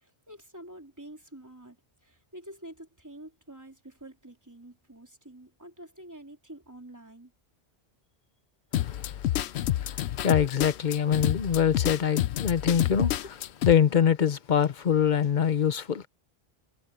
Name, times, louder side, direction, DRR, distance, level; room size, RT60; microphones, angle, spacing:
voice 1, 0.0-1.8 2.0-7.3, right 1 dB, 15° right, 3.3 m, -47 dB
sound 1, 8.7-13.7, left 13 dB, 85° left, 0.9 m, -28 dB
voice 2, 8.8-9.2 9.8-16.1, left 8 dB, 50° left, 0.9 m, -25 dB
omnidirectional pair, 1.1 m